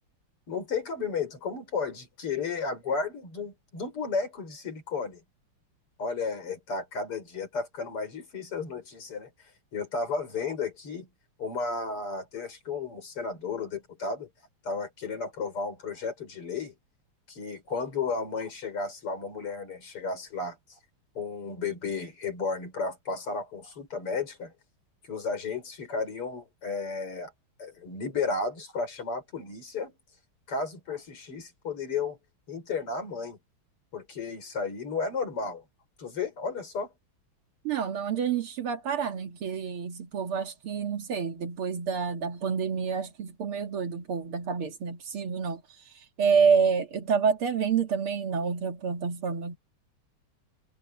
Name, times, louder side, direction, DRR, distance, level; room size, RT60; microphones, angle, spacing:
voice 1, 0.5-5.2 6.0-9.3 9.7-11.1 11.4-14.3 14.6-16.7 17.3-20.6 21.2-24.5 25.0-27.3 27.6-29.9 30.5-32.2 32.5-33.4 33.9-35.6 36.0-36.9, left 4 dB, 85° left, 5.8 m, -33 dB
voice 2, 37.6-45.6 46.2-49.6, right 6 dB, 75° right, 2.6 m, -28 dB
omnidirectional pair, 2.4 m